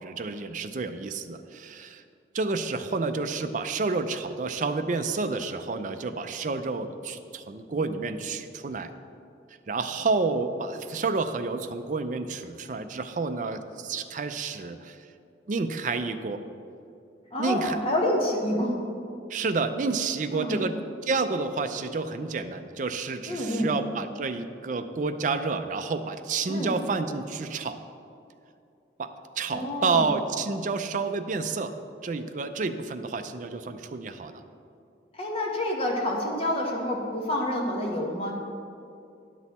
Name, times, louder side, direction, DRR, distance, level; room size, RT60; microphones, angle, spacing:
voice 1, 0.0-2.0 2.3-8.9 9.7-15.0 15.5-16.4 17.4-17.8 19.3-27.8 29.0-29.1 29.4-31.7 32.0-34.4, right 4 dB, 45° right, 8 dB, 0.4 m, -29 dB
voice 2, 17.3-18.8 20.3-20.6 23.3-23.7 26.5-26.7 29.5-30.1 35.1-38.3, left 1 dB, 30° left, -1 dB, 1.2 m, -28 dB
9.9 x 6.2 x 4.2 m, 2.5 s
head